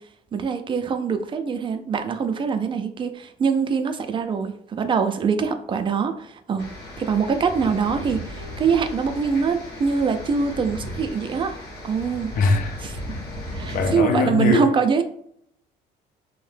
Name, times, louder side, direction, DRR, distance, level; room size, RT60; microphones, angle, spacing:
voice 1, 0.3-6.7 7.0-11.6 11.8-12.3 12.8-12.9 13.5-15.0, right 5 dB, 30° right, 0.3 m, -23 dB
sound 1, 6.6-13.9, left 1 dB, 75° left, 0.9 m, -36 dB
voice 2, 12.4-12.9 13.7-14.7, left 3 dB, 55° left, 0.5 m, -21 dB
2.6 x 2.1 x 3.2 m
cardioid pair, 110°, 17 cm